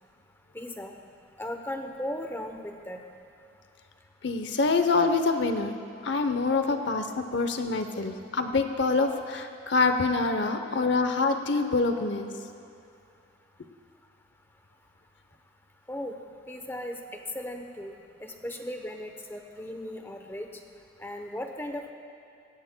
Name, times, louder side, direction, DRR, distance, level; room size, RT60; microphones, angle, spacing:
voice 1, 0.5-0.9 1.4-3.0 15.9-16.1 16.5-17.0 17.3-17.9 18.2-20.5 21.0-21.9, left 1 dB, 10° left, 4 dB, 0.8 m, -36 dB
voice 2, 4.2-5.7 6.0-12.3, left 3 dB, 75° left, 7 dB, 0.8 m, -26 dB
17.5 x 15.5 x 2.2 m, 2.6 s
head